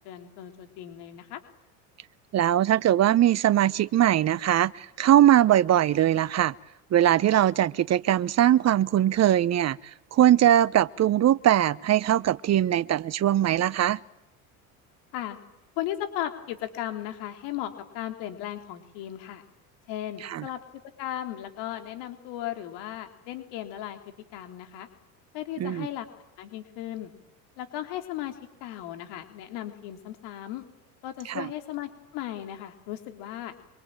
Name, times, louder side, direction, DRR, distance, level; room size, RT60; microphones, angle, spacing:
voice 1, 0.0-1.4 15.1-15.4 15.8-19.4 19.9-20.6 21.0-24.0 24.3-24.9 25.3-26.1 26.4-27.1 27.6-28.4 28.6-30.6 31.0-33.5, left 12 dB, 65° left, 3.8 m, -36 dB
voice 2, 2.3-6.5 6.9-9.8 10.1-14.0 20.2-20.4 25.6-25.9 31.3-31.4, right 12 dB, 35° right, 1.0 m, -21 dB
26.0 x 24.5 x 9.0 m
hypercardioid pair, 85°, 43 cm